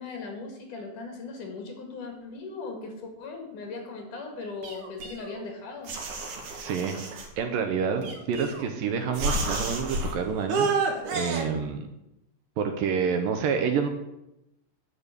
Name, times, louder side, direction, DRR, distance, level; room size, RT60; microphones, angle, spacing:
voice 1, 0.0-5.9, left 4 dB, 60° left, 3 dB, 3.2 m, -38 dB
sound 1, 4.6-5.5 5.9-7.3 8.0-8.8 9.1-10.1 10.5-11.4, right 3 dB, 60° right, 2.5 m, -30 dB
voice 2, 6.6-10.7 11.1-11.9 12.6-13.9, right 6 dB, 75° right, 6 dB, 2.4 m, -28 dB
10.0 x 5.4 x 8.2 m, 0.87 s
omnidirectional pair, 4.4 m